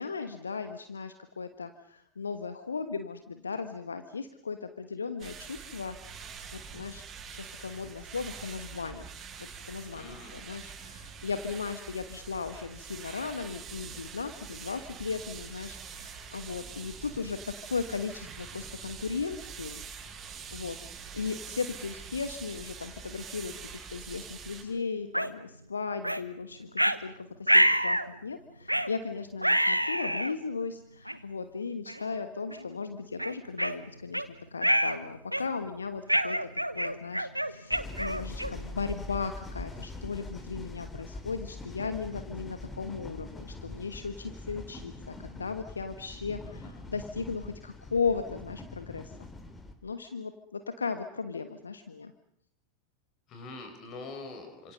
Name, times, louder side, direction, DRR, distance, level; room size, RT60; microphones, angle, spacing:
voice 1, 0.0-6.0 6.5-7.1 7.3-9.0 9.4-17.4 17.7-19.8 20.5-20.8 21.1-36.5 36.7-49.2 49.8-52.1, left 5 dB, 75° left, 9 dB, 1.3 m, -36 dB
sound 1, 5.2-24.6, right 6 dB, 25° right, 7.3 m, -45 dB
voice 2, 9.9-10.4 46.4-46.8 53.3-54.7, left 3 dB, 35° left, 5 dB, 6.1 m, -44 dB
sound 2, 25.1-25.3 26.0-26.2 26.8-27.0 27.5-28.1 28.7-28.9 29.4-30.3 31.1-31.2 31.9-32.1 32.5-32.6 33.2-34.3 34.6-35.0 35.3-35.6 36.1-38.7, right 1 dB, 90° right, 1.1 m, -26 dB
sound 3, 37.7-49.7, left 2 dB, 15° left, 3.0 m, -43 dB
28.5 x 26.5 x 5.4 m, 0.69 s
figure-of-eight pair, 90°, 0 cm